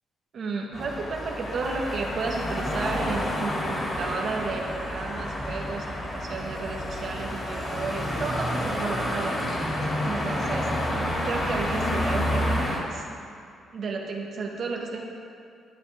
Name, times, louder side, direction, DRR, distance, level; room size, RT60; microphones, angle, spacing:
voice 1, 0.3-10.7 11.2-13.1 13.7-15.0, right 4 dB, 60° right, 0 dB, 1.4 m, -33 dB
sound 1, 0.7-12.8, equal, 25° left, 2.5 m, -29 dB
11.5 x 9.2 x 3.6 m, 2.4 s
cardioid pair, 90°, 0 cm